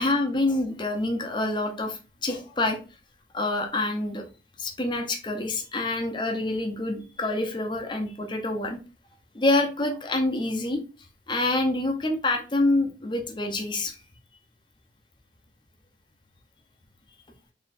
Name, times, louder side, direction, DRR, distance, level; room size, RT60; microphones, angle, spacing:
voice 1, 0.0-2.8 3.3-4.2 4.6-8.8 9.3-10.8 11.3-14.0, left 2 dB, 25° left, 3 dB, 0.8 m, -26 dB
4.2 x 3.6 x 2.6 m, 0.33 s
head